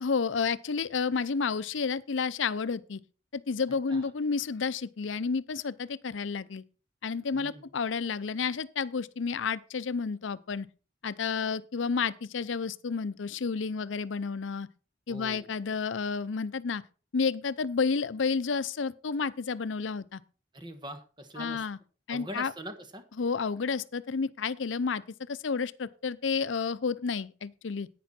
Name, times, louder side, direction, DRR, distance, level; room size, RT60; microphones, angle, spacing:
voice 1, 0.0-3.0 3.3-6.6 7.0-10.7 11.0-14.7 15.1-16.8 17.1-20.2 21.4-21.8 22.1-22.5 23.2-27.9, left 5 dB, 85° left, 0.6 m, -31 dB
voice 2, 7.3-7.7 15.1-15.5 20.5-21.6 22.1-23.0, equal, 25° right, 1.4 m, -43 dB
10.5 x 9.2 x 4.3 m
head